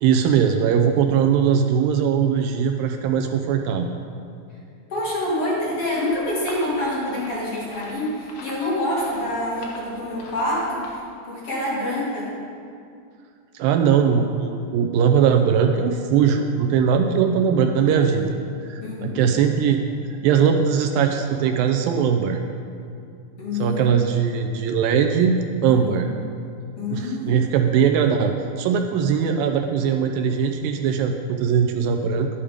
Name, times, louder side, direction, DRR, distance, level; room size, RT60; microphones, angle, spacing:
voice 1, 0.0-3.9 13.5-18.4 18.7-19.8 20.2-22.4 23.6-26.1 26.9-32.3, right 7 dB, 80° right, 5 dB, 2.2 m, -20 dB
voice 2, 4.9-10.9 11.2-12.3 18.8-19.2 23.4-24.0 25.7-26.0 26.8-27.5, left 1 dB, 45° left, -7 dB, 2.8 m, -26 dB
sound 1, 5.6-11.0, left 2 dB, 65° left, 1.6 m, -43 dB
11.5 x 8.7 x 5.0 m, 2.4 s
omnidirectional pair, 4.3 m